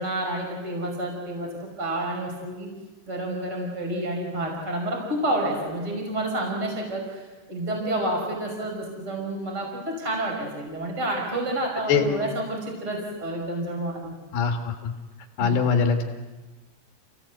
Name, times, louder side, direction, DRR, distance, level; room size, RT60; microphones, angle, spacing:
voice 1, 0.0-2.7 3.1-14.1 15.4-15.6, right 1 dB, 15° right, 0 dB, 5.1 m, -29 dB
voice 2, 14.3-14.9 15.4-16.0, left 6 dB, 65° left, 4 dB, 3.4 m, -22 dB
28.5 x 18.0 x 8.2 m, 1.2 s
omnidirectional pair, 6.0 m